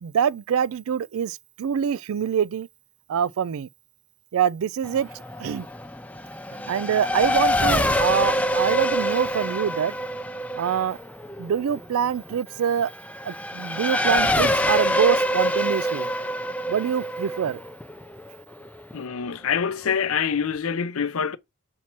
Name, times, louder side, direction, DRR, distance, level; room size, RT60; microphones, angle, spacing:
voice 1, 0.0-2.7 3.1-3.7 4.3-5.1 5.4-5.7 6.7-9.9 10.6-11.0 11.4-12.9 13.2-16.1 16.7-17.6, right 8 dB, 80° right, 0.3 m, -25 dB
Race car auto racing / Accelerating revving vroom, 4.8-18.9, left 1 dB, 5° left, 0.4 m, -26 dB
voice 2, 18.9-21.4, left 7 dB, 80° left, 0.6 m, -25 dB
7.1 x 4.4 x 4.4 m
head